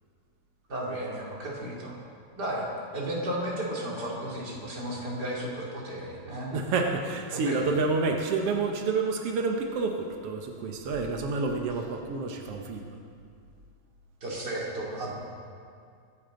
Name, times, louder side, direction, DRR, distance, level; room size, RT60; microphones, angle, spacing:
voice 1, 0.7-2.0 2.4-2.6 2.9-6.5 7.3-7.7 14.2-15.1, right 1 dB, 30° right, -5 dB, 3.1 m, -33 dB
voice 2, 6.5-13.0, right 4 dB, 85° right, 2 dB, 1.3 m, -29 dB
24.0 x 10.5 x 3.9 m, 2.3 s
omnidirectional pair, 4.1 m